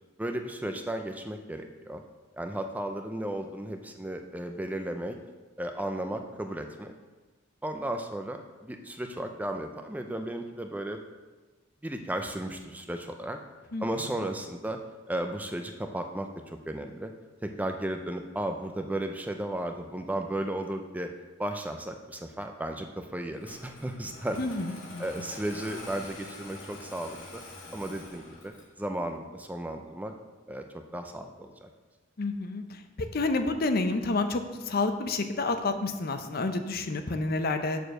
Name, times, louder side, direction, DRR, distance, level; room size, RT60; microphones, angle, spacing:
voice 1, 0.2-2.0 2.3-5.2 5.6-6.9 7.6-11.0 11.8-13.4 13.8-14.8 15.1-17.1 17.4-21.1 21.4-24.4 25.0-27.4 27.7-28.5 28.8-30.1 30.5-31.7, right 1 dB, 10° right, 5 dB, 0.4 m, -34 dB
Engine starting, 23.4-28.8, left 2 dB, 80° left, 2.2 m, -45 dB
voice 2, 24.4-25.0 32.2-37.8, left 3 dB, 55° left, 7 dB, 0.6 m, -29 dB
6.8 x 4.5 x 6.3 m, 1.2 s
head